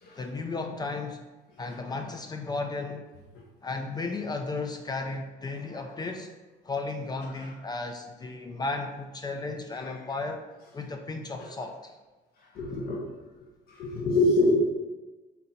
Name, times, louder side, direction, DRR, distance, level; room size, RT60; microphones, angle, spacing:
voice 1, 0.1-1.2 1.6-3.0 3.6-6.3 6.6-10.5 10.7-12.0, left 3 dB, 25° left, 4 dB, 0.4 m, -34 dB
voice 2, 12.5-13.0 13.7-14.6, left 2 dB, 65° left, -2 dB, 0.9 m, -25 dB
4.0 x 2.8 x 4.3 m, 1.2 s
cardioid pair, 110°, 17 cm